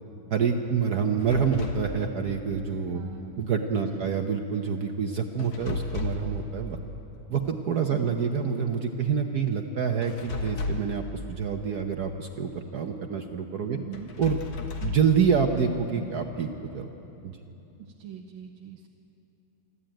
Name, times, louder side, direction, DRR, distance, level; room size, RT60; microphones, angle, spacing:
voice 1, 0.3-3.0 3.4-6.8 7.3-13.8 14.2-14.4 14.8-16.9 17.2-17.4, right 6 dB, 60° right, 4 dB, 1.2 m, -27 dB
sound 1, 1.2-1.9 5.4-6.4 10.0-11.0 13.9-15.2, left 4 dB, 70° left, 2.2 m, -33 dB
voice 2, 2.9-3.5 3.8-4.1 7.8-8.1 13.7-14.1 17.8-18.9, right 10 dB, 75° right, 1 dB, 1.7 m, -41 dB
27.0 x 11.5 x 9.0 m, 3.0 s
omnidirectional pair, 2.3 m